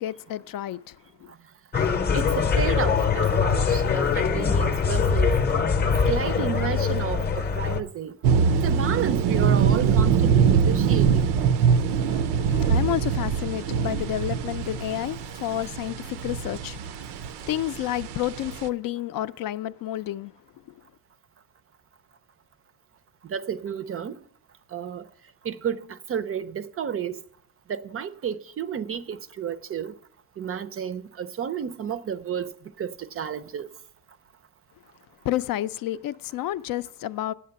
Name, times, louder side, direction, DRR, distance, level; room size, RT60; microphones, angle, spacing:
voice 1, 0.0-1.3 12.1-20.3 20.7-20.8 35.2-37.3, left 13 dB, 60° left, 0.5 m, -30 dB
sound 1, 1.7-7.8, left 5 dB, 25° left, 0.7 m, -23 dB
voice 2, 2.1-5.4 6.1-8.2 8.6-11.4 23.3-24.2 24.7-25.0 25.4-27.2 27.7-29.9 30.4-32.5 32.8-33.7, right 8 dB, 35° right, 0.5 m, -31 dB
sound 2, 8.2-18.7, right 6 dB, 90° right, 0.7 m, -23 dB
8.6 x 7.3 x 6.9 m
cardioid pair, 125°, 39 cm